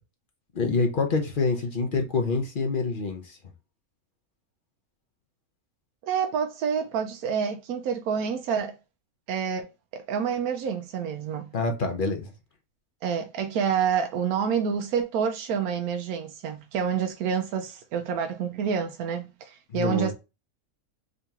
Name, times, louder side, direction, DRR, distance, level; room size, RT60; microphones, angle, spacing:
voice 1, 0.5-3.4 11.5-12.3 19.7-20.1, left 3 dB, 45° left, 0.8 m, -26 dB
voice 2, 6.0-8.7 9.3-9.7 9.9-11.5 13.0-20.1, right 7 dB, 85° right, 1.1 m, -28 dB
3.8 x 2.9 x 3.5 m
omnidirectional pair, 1.5 m